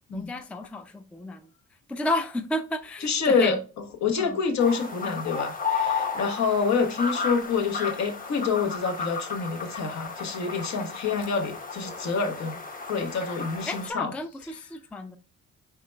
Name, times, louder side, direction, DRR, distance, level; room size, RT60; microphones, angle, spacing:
voice 1, 0.1-1.5 1.9-3.6 4.2-4.4 13.7-15.2, left 1 dB, 5° left, 0.4 m, -32 dB
voice 2, 3.0-3.6 4.0-12.6 12.9-14.1, left 5 dB, 65° left, 1.1 m, -27 dB
sound 1, 4.6-13.9, left 5 dB, 30° left, 0.9 m, -33 dB
4.7 x 3.4 x 3.2 m
cardioid pair, 90°, 30 cm